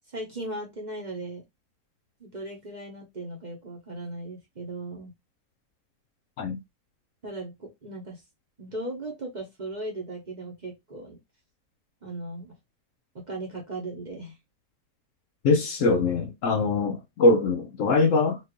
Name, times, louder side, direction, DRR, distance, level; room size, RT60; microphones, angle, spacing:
voice 1, 0.1-1.4 2.2-5.1 7.2-8.2 8.6-11.2 12.0-12.5 13.1-14.4, right 2 dB, 35° right, 0.9 m, -37 dB
voice 2, 15.4-18.4, left 3 dB, 65° left, 0.9 m, -22 dB
4.4 x 2.5 x 3.0 m
omnidirectional pair, 1.6 m